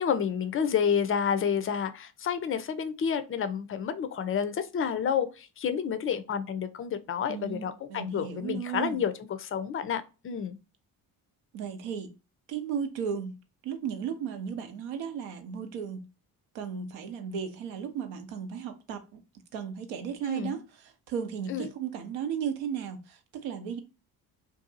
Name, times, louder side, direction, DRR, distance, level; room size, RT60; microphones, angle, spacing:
voice 1, 0.0-9.1 9.4-10.6 20.3-20.6 21.5-21.7, left 7 dB, 30° left, 0.4 m, -29 dB
voice 2, 7.3-7.6 7.9-9.0 11.5-12.1 12.5-13.4 13.6-16.1 16.5-19.2 19.5-23.8, right 7 dB, 70° right, 0.7 m, -35 dB
2.6 x 2.4 x 2.5 m
hypercardioid pair, 50°, 49 cm